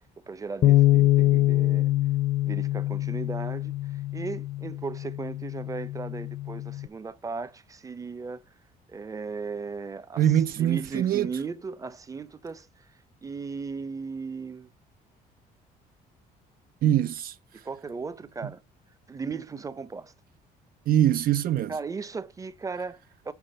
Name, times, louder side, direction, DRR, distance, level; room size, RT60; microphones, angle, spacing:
voice 1, 0.3-1.9 2.4-8.4 8.9-12.7 13.2-14.7 17.5-18.6 19.1-20.1 21.7-23.3, right 4 dB, 20° right, 0.8 m, -36 dB
Bass guitar, 0.6-6.9, left 15 dB, 40° left, 0.5 m, -24 dB
voice 2, 10.2-11.3 16.8-17.4 20.9-21.7, right 11 dB, 60° right, 0.6 m, -23 dB
6.4 x 5.9 x 6.6 m
cardioid pair, 110°, 17 cm